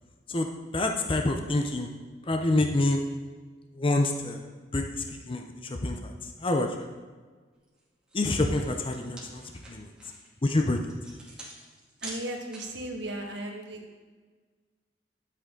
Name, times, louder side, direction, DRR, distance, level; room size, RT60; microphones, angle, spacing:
voice 1, 0.7-1.9 2.3-3.0 3.7-4.4 4.7-6.1 6.4-6.7 8.1-9.9 10.4-10.9, left 2 dB, 30° left, 4 dB, 0.7 m, -27 dB
sound 1, 7.7-7.8 8.1-12.9, right 2 dB, 5° right, 2.3 m, -46 dB
voice 2, 12.0-13.9, right 1 dB, 75° right, 1 dB, 1.7 m, -36 dB
11.5 x 8.1 x 3.8 m, 1.4 s
head